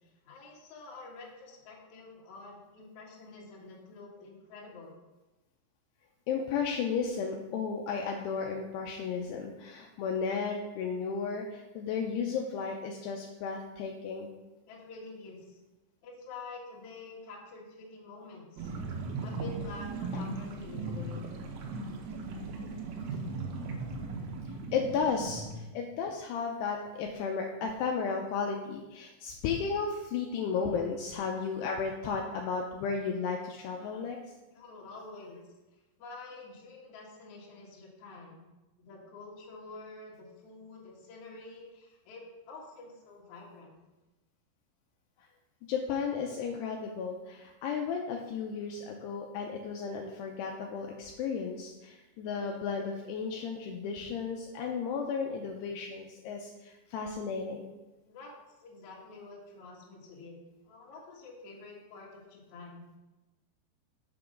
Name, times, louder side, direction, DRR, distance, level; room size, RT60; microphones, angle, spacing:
voice 1, 0.3-5.0 14.7-15.6 16.0-18.7 19.2-21.3 34.5-35.4 36.0-38.4 38.8-43.7 58.1-58.3 58.6-60.4 60.7-62.9, left 3 dB, 60° left, -3 dB, 2.2 m, -48 dB
voice 2, 6.3-14.3 24.7-34.2 45.7-57.7, left 5 dB, 85° left, 1 dB, 2.4 m, -34 dB
sound 1, 18.6-25.6, right 3 dB, 75° right, 2.5 m, -38 dB
6.7 x 5.9 x 5.1 m, 1.1 s
omnidirectional pair, 5.3 m